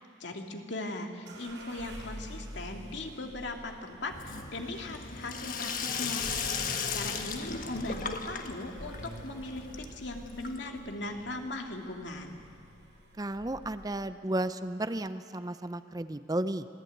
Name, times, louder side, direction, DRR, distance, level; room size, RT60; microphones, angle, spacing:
voice 1, 0.2-6.3 6.9-12.4, left 2 dB, 80° left, 3 dB, 2.4 m, -39 dB
sound 1, 1.3-14.1, equal, 75° right, 5.9 m, -48 dB
Sink (filling or washing), 4.1-10.9, left 5 dB, 45° left, 1.4 m, -36 dB
voice 2, 13.2-16.7, right 1 dB, 20° right, 12 dB, 0.6 m, -33 dB
26.0 x 18.0 x 9.3 m, 2.4 s
head